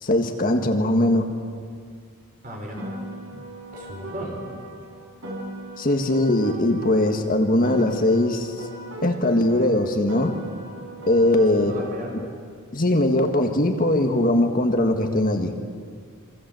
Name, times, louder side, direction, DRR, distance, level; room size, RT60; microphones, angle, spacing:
voice 1, 0.0-1.3 3.3-3.4 5.8-8.7 9.0-10.4 11.1-11.8 12.1-12.3 12.7-15.5, left 1 dB, 40° left, 4 dB, 1.7 m, -21 dB
voice 2, 2.4-2.8 3.7-4.4 10.3-10.6 11.4-12.2, right 1 dB, 35° right, 0 dB, 4.8 m, -36 dB
Piano, 2.8-7.2 7.6-12.2, right 1 dB, 65° right, 6.0 m, -38 dB
27.0 x 24.5 x 7.8 m, 2.1 s
head